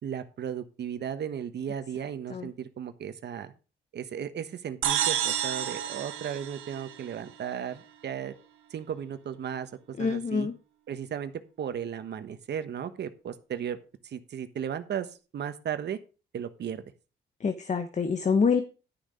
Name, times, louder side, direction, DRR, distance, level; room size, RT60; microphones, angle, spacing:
voice 1, 0.0-3.5 3.9-8.3 8.7-9.7 10.0-10.5 10.9-11.3 11.6-13.8 14.0-16.0 16.3-16.8, right 8 dB, 60° right, 10 dB, 1.3 m, -35 dB
sound 1, 4.8-7.4, right 10 dB, 85° right, 1.4 m, -30 dB
voice 2, 10.0-10.5 17.4-18.6, left 5 dB, 35° left, 9 dB, 1.1 m, -26 dB
11.5 x 6.6 x 5.0 m, 0.33 s
cardioid pair, 90°, 20 cm